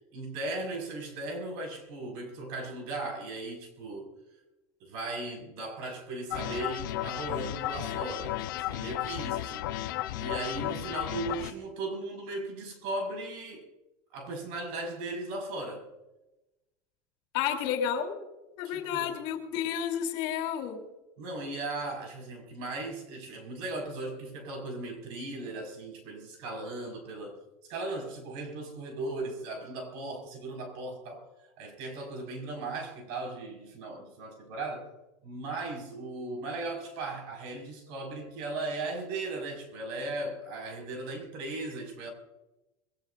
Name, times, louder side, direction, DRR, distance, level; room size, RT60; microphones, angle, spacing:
voice 1, 0.1-4.1 4.8-13.7 14.1-15.9 18.7-19.2 21.2-27.4 27.7-31.3 31.6-34.9 35.2-42.1, right 2 dB, 65° right, 5.4 m, -37 dB
sound 1, 6.3-11.5, left 13 dB, 85° left, 0.9 m, -34 dB
voice 2, 17.3-18.2 18.6-20.8, left 9 dB, 65° left, 3.3 m, -31 dB
22.0 x 18.0 x 2.6 m
supercardioid pair, 135°, 10 cm